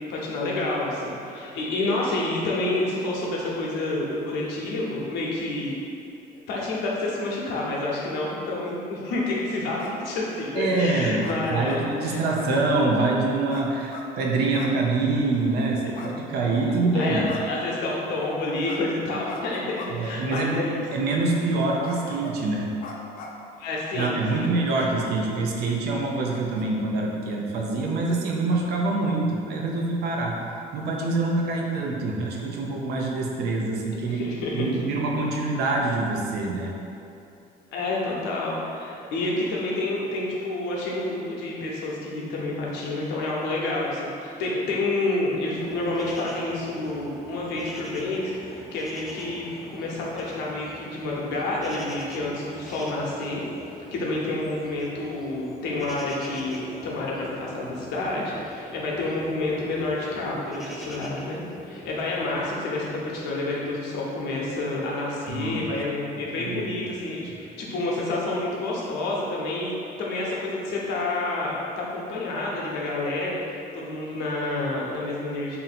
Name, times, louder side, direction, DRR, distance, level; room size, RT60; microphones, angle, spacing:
voice 1, 0.0-5.7 6.5-11.7 12.0-12.5 15.8-15.9 16.9-20.8 23.6-24.6 34.1-34.7 37.7-53.4 53.9-73.4 73.7-75.6, left 2 dB, 85° left, -4 dB, 0.8 m, -29 dB
sound 1, 9.8-10.1 11.2-11.8 12.2-12.8 13.5-14.1 14.5-14.8 15.1-15.2 15.9-16.7 17.3-17.6 18.7-18.8 19.3-19.9 20.3-20.5 21.0-21.1 21.8-22.4 22.8-23.4 24.0-24.1 24.7-24.9 25.2-25.3 25.6-25.7 26.3-26.6, left 4 dB, 55° left, 0.4 m, -40 dB
voice 2, 10.5-17.4 19.9-22.7 23.9-30.4 30.7-34.3 34.5-36.7 65.3-65.6 66.3-66.7, right 3 dB, 75° right, -1 dB, 0.6 m, -25 dB
sound 2, 45.5-62.5, equal, ahead, 0.4 m, -43 dB
2.7 x 2.6 x 4.1 m, 2.7 s
cardioid pair, 110°, 17 cm